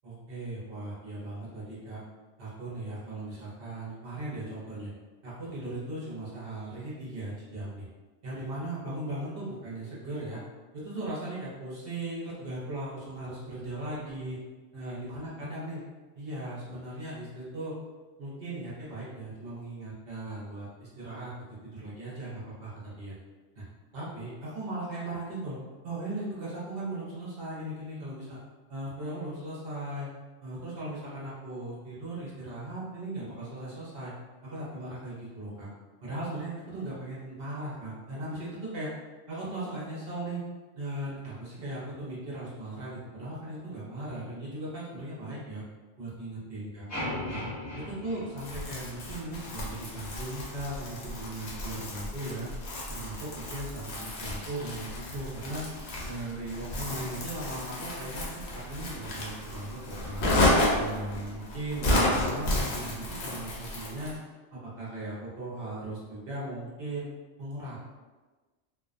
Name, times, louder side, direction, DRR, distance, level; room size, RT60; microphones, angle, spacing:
voice 1, 0.0-2.0 2.4-4.9 5.2-7.9 8.2-10.4 10.7-14.4 14.7-15.8 16.2-17.7 18.2-21.3 21.6-23.1 23.6-23.7 23.9-25.6 25.8-28.4 28.7-30.1 30.4-34.1 34.4-35.7 36.0-38.9 39.3-40.4 40.8-45.6 46.0-46.9 47.3-47.4 47.7-52.5 52.9-55.6 56.1-60.3 60.7-64.1 64.5-67.1 67.4-67.8, right 1 dB, 55° right, -7 dB, 0.8 m, -38 dB
sound 1, 46.9-49.2, left 1 dB, 15° left, 0.9 m, -37 dB
Crumpling crinkling, 48.4-64.2, left 1 dB, 65° left, 0.8 m, -32 dB
2.3 x 2.2 x 2.4 m, 1.3 s
omnidirectional pair, 1.2 m